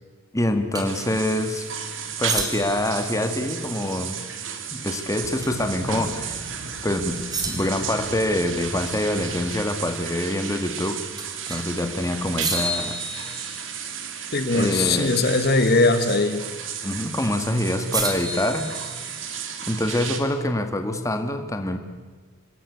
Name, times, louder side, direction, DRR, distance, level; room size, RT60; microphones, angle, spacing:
voice 1, 0.3-1.7 2.2-4.2 4.7-7.2 7.4-11.0 11.5-13.0 14.5-15.2 16.8-18.7 19.7-21.8, left 1 dB, 15° left, 7 dB, 1.7 m, -25 dB
sound 1, 0.7-0.9 2.2-2.9 5.4-5.7 6.0-6.1 7.3-7.9 11.2-11.7 12.4-13.8 16.1-16.5 17.9-19.3, right 2 dB, 20° right, 3.3 m, -30 dB
sound 2, 0.8-20.2, right 7 dB, 65° right, 2.8 m, -34 dB
sound 3, 5.2-9.6, right 1 dB, 85° right, 3.1 m, -41 dB
voice 2, 14.3-16.5, left 3 dB, 50° left, 9 dB, 1.5 m, -20 dB
26.5 x 21.0 x 8.5 m, 1.4 s
head